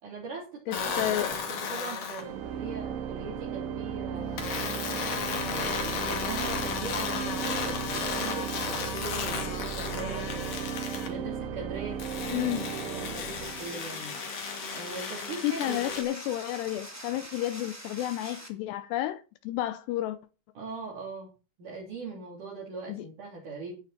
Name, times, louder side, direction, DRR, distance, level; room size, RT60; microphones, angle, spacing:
voice 1, 0.0-4.8 5.4-10.5 11.0-12.0 12.4-14.1 14.7-15.8 20.5-21.3 21.6-23.7, right 4 dB, 50° right, 4.4 m, -41 dB
voice 2, 0.7-1.3 12.3-12.7 15.4-20.2 22.9-23.1, left 14 dB, 80° left, 2.7 m, -31 dB
sound 1, 0.7-2.3 4.4-11.1 12.0-16.0, left 6 dB, 55° left, 3.3 m, -34 dB
Organ, 2.2-14.0, right 8 dB, 85° right, 3.5 m, -36 dB
sound 2, 13.3-18.5, right 1 dB, 5° right, 1.2 m, -44 dB
13.0 x 9.8 x 4.3 m
omnidirectional pair, 5.0 m